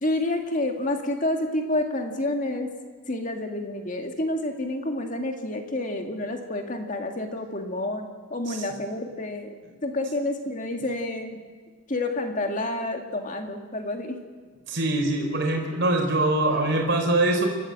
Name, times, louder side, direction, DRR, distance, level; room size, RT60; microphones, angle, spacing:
voice 1, 0.0-2.7 3.1-9.6 9.8-11.4 11.9-14.2, left 1 dB, 35° left, 4 dB, 2.0 m, -29 dB
voice 2, 14.7-17.5, right 2 dB, 55° right, 1 dB, 4.0 m, -23 dB
29.0 x 12.5 x 7.7 m, 1.5 s
head